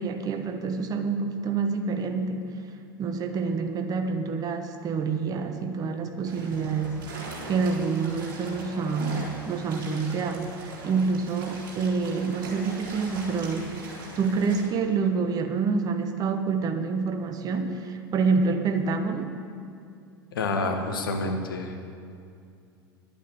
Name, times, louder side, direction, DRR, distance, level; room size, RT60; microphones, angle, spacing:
voice 1, 0.0-2.5 3.0-7.0 7.5-13.7 14.1-19.3, right 4 dB, 30° right, 6 dB, 1.2 m, -27 dB
sound 1, 6.2-14.7, right 2 dB, 55° right, 3.5 m, -41 dB
voice 2, 20.3-21.8, left 2 dB, 70° left, 3 dB, 1.6 m, -28 dB
11.5 x 8.9 x 7.9 m, 2.4 s
figure-of-eight pair, 80°, 12 cm